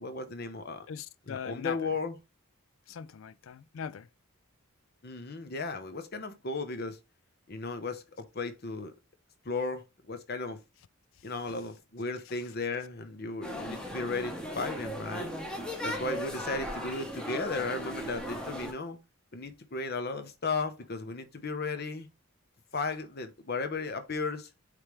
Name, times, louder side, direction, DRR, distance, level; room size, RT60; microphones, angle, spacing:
voice 1, 0.0-0.9 1.3-2.2 5.0-7.0 7.5-8.9 9.4-10.6 11.2-15.3 15.8-19.0 19.3-22.1 22.7-24.5, left 3 dB, 45° left, 0.9 m, -35 dB
voice 2, 0.9-1.8 2.9-4.1 11.5-11.6 16.1-16.3, left 7 dB, 65° left, 0.4 m, -40 dB
sound 1, 13.4-18.7, equal, 5° left, 1.0 m, -37 dB
8.8 x 3.4 x 3.2 m
head